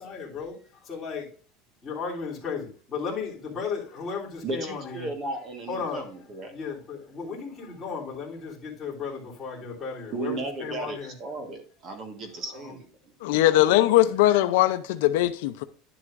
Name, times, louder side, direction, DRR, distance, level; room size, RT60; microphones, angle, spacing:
voice 1, 0.0-1.3 1.8-5.1 5.7-6.1 6.5-11.1 12.5-12.8 13.2-13.7, left 5 dB, 15° left, 3.3 m, -35 dB
voice 2, 4.4-6.5 10.1-12.9, right 2 dB, 30° right, 1.6 m, -35 dB
voice 3, 13.2-15.6, left 14 dB, 75° left, 0.6 m, -20 dB
10.5 x 7.9 x 2.6 m
cardioid pair, 175°, 0 cm